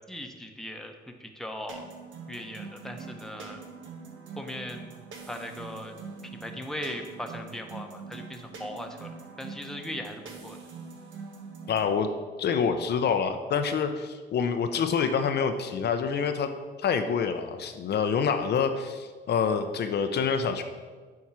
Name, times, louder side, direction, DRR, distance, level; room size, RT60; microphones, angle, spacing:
voice 1, 0.1-1.8 2.3-3.6 4.4-4.9 5.3-5.9 6.3-10.6, left 1 dB, ahead, 3 dB, 0.9 m, -39 dB
sound 1, 1.7-12.0, right 5 dB, 75° right, 1.3 m, -44 dB
voice 2, 11.7-12.1 12.4-16.5 16.8-20.6, left 6 dB, 55° left, 7 dB, 0.6 m, -27 dB
7.2 x 4.7 x 6.1 m, 1.4 s
cardioid pair, 90°, 20 cm